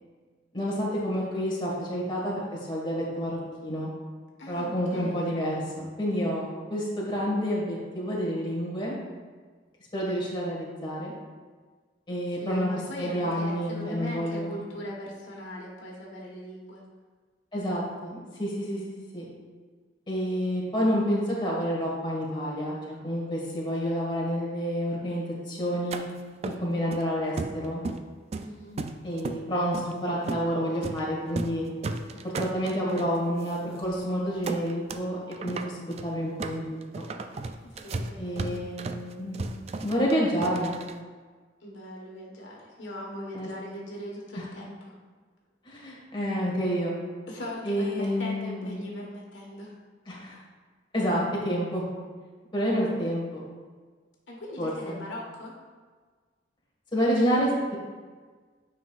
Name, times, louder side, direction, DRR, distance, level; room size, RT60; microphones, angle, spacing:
voice 1, 0.5-3.9 4.5-8.9 9.9-11.1 12.1-12.7 13.0-14.6 17.5-18.8 19.1-19.3 20.1-26.1 26.4-27.8 29.0-31.6 32.2-36.6 36.9-37.1 38.2-39.4 39.8-40.8 43.3-43.5 44.3-44.4 45.6-46.9 47.6-48.9 50.1-50.4 50.9-51.8 52.5-53.4 54.6-55.0 56.9-57.8, equal, 25° left, -5 dB, 1.7 m, -29 dB
voice 2, 4.4-5.3 12.4-16.8 28.4-28.8 37.6-38.6 41.6-45.0 47.3-49.7 54.3-55.5, equal, 85° left, -2 dB, 1.4 m, -40 dB
sound 1, 25.9-26.0 26.4-27.0 27.4-28.1 28.3-29.4 29.7-29.9 30.3-30.5 30.8-31.0 31.3-31.6 31.8-33.1 33.5-33.6 33.8-34.0 34.4-35.0 35.3-41.0, right 3 dB, 35° right, 0.3 m, -35 dB
9.3 x 5.6 x 2.4 m, 1.5 s
head